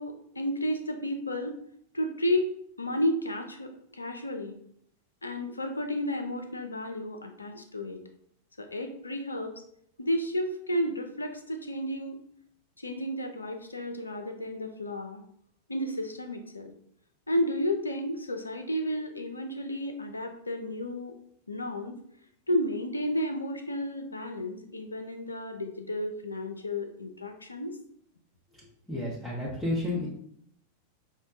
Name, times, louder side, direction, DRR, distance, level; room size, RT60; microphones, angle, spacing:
voice 1, 0.0-1.6 1.9-2.5 2.8-4.6 5.2-8.0 8.6-9.6 10.0-12.2 12.8-15.2 15.7-16.7 17.3-21.1 21.5-22.0 22.5-27.8, left 1 dB, 80° left, 6 dB, 0.4 m, -32 dB
voice 2, 28.9-30.1, left 1 dB, ahead, -9 dB, 0.8 m, -31 dB
5.1 x 2.1 x 2.5 m, 0.68 s
figure-of-eight pair, 90°, 0 cm